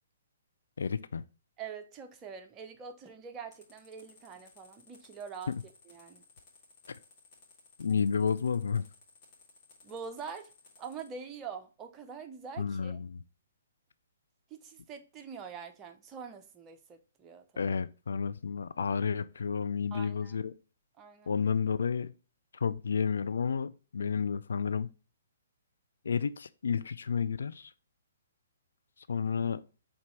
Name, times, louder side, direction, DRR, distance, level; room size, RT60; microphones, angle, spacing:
voice 1, 0.8-1.2 7.8-8.8 12.6-13.2 17.6-20.5 21.3-22.1 22.6-24.9 26.0-27.7 29.1-29.6, left 6 dB, 65° left, 0.4 m, -31 dB
voice 2, 1.6-6.2 9.8-10.5 10.8-13.0 14.5-17.8 19.9-20.4 21.0-21.4, right 6 dB, 20° right, 0.8 m, -45 dB
sound 1, 3.5-11.1, left 4 dB, 30° left, 2.6 m, -59 dB
5.2 x 4.0 x 4.5 m
figure-of-eight pair, 125°, 0 cm